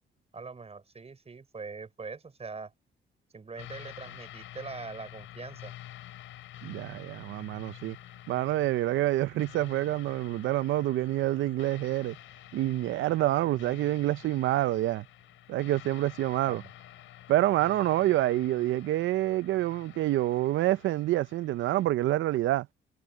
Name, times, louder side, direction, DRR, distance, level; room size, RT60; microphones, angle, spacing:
voice 1, 0.3-2.7 3.3-5.7 16.5-16.7, right 4 dB, 30° right, 6.0 m, -42 dB
sound 1, 3.6-21.9, left 13 dB, 85° left, 6.8 m, -49 dB
voice 2, 6.6-8.0 8.3-12.2 12.5-15.0 15.5-16.6 17.3-22.7, right 15 dB, 75° right, 0.5 m, -27 dB
cardioid pair, 90°, 20 cm